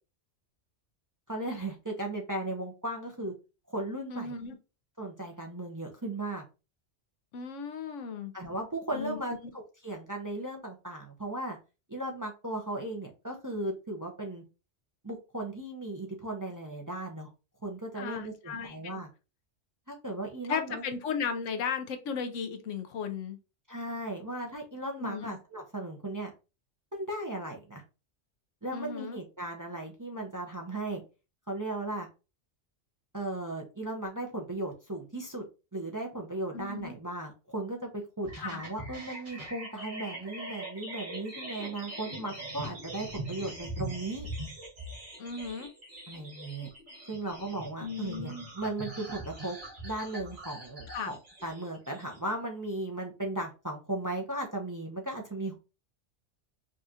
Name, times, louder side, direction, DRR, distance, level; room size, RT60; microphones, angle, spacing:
voice 1, 1.3-3.3 3.7-4.3 5.0-6.4 8.3-11.6 11.9-14.4 15.0-17.3 17.6-19.1 19.9-20.8 23.7-26.3 26.9-27.8 28.6-31.0 31.5-32.1 33.1-35.5 35.7-44.3 46.1-46.7 47.1-49.6 49.8-55.6, right 2 dB, 20° right, 1 dB, 0.5 m, -36 dB
voice 2, 4.1-4.5 7.3-8.3 8.9-9.2 17.9-18.8 20.5-23.4 25.0-25.4 28.7-29.2 36.5-37.0 38.4-38.6 45.2-45.7 47.8-48.5 50.9-51.1, left 6 dB, 85° left, 8 dB, 1.0 m, -35 dB
sound 1, 38.2-52.3, right 1 dB, 45° right, 1.7 m, -42 dB
5.2 x 2.4 x 2.7 m, 0.30 s
omnidirectional pair, 1.2 m